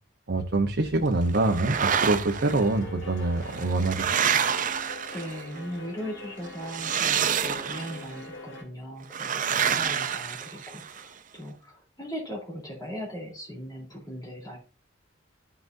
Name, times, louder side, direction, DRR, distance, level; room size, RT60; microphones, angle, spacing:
voice 1, 0.3-4.1, right 2 dB, 60° right, 2 dB, 0.9 m, -25 dB
sound 1, 1.0-1.5 1.7-8.6, left 1 dB, 75° left, 2.4 m, -43 dB
sound 2, 1.3-2.6 3.4-5.6 6.6-8.1 9.1-11.0, right 7 dB, 45° right, 0.6 m, -28 dB
voice 2, 5.1-14.6, equal, 20° left, -2 dB, 3.5 m, -38 dB
14.0 x 5.9 x 2.7 m, 0.33 s
head